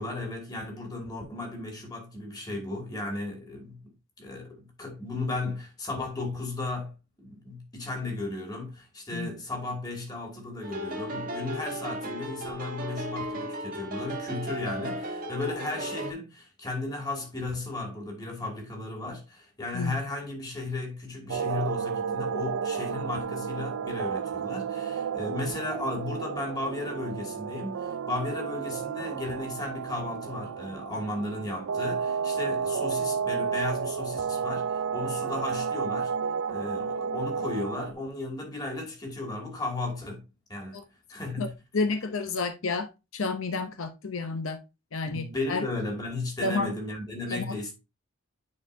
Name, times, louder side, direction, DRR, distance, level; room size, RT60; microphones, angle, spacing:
voice 1, 0.0-3.8 4.2-36.1 36.5-40.2 40.5-40.8 41.1-41.5 45.1-47.7, left 2 dB, 20° left, 2.2 m, -35 dB
sound 1, 10.6-16.1, equal, 45° right, 1.4 m, -35 dB
sound 2, 21.3-37.9, right 6 dB, 85° right, 0.4 m, -32 dB
voice 2, 41.7-42.9 43.1-44.6 44.9-45.6 46.4-46.7 47.3-47.6, left 3 dB, 80° left, 0.8 m, -30 dB
9.6 x 4.3 x 2.7 m
head